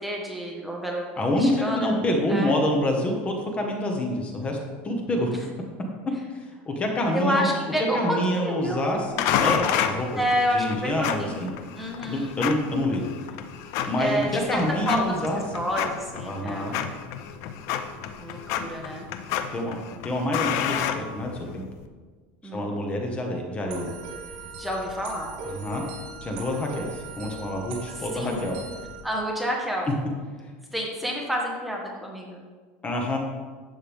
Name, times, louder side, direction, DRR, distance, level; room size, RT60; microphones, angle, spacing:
voice 1, 0.0-1.9 2.3-2.5 7.1-8.9 10.1-11.4 11.7-12.3 14.0-15.2 15.5-16.7 18.2-19.1 21.5-21.7 22.4-22.7 24.6-25.3 27.9-28.4 29.0-29.9 30.7-32.4, equal, ahead, -2 dB, 1.5 m, -29 dB
voice 2, 1.2-4.6 4.8-5.3 6.3-7.5 7.8-10.2 10.5-11.5 12.1-13.0 13.9-15.4 16.2-16.7 19.5-19.8 20.0-21.6 22.5-23.9 25.5-25.8 26.2-28.6 32.8-33.2, left 1 dB, 20° left, 1 dB, 1.6 m, -27 dB
sound 1, 9.2-21.7, left 9 dB, 55° left, 0.8 m, -30 dB
sound 2, 23.7-29.0, right 2 dB, 65° right, 3.5 m, -39 dB
12.0 x 8.3 x 3.6 m, 1.5 s
supercardioid pair, 140°, 6 cm